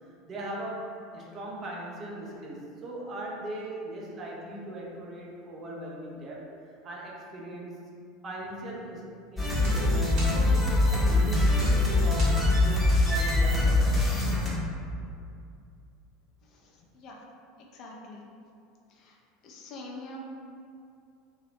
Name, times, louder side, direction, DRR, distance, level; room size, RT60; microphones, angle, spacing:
voice 1, 0.2-6.5 6.8-7.9 8.2-14.2, right 1 dB, 35° right, -3 dB, 0.6 m, -39 dB
sound 1, 8.4-14.4, equal, 60° right, 1.1 m, -47 dB
sound 2, 9.4-14.5, left 2 dB, 15° left, 0.8 m, -23 dB
voice 2, 16.4-17.2 17.7-18.2 18.9-19.2 19.4-20.2, left 2 dB, 45° left, -1 dB, 0.5 m, -45 dB
2.8 x 2.3 x 3.3 m, 2.4 s
figure-of-eight pair, 75°, 0 cm